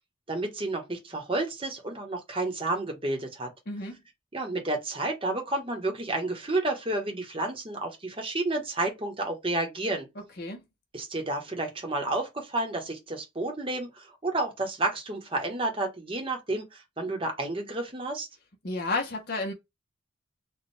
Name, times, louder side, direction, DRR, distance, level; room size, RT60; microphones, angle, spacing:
voice 1, 0.3-3.5 4.3-10.1 10.9-18.3, right 2 dB, 25° right, 1.0 m, -31 dB
voice 2, 18.6-19.5, left 2 dB, 50° left, 0.9 m, -31 dB
4.3 x 2.3 x 3.3 m
head